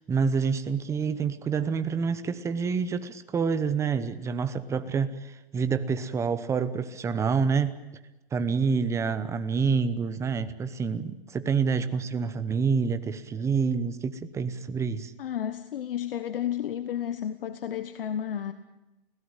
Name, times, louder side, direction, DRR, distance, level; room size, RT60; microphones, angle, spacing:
voice 1, 0.0-7.8 8.3-15.1, right 5 dB, 10° right, 12 dB, 0.9 m, -27 dB
voice 2, 15.2-18.5, left 10 dB, 60° left, 11 dB, 1.3 m, -32 dB
29.5 x 17.0 x 9.0 m, 1.0 s
hypercardioid pair, 140°, 31 cm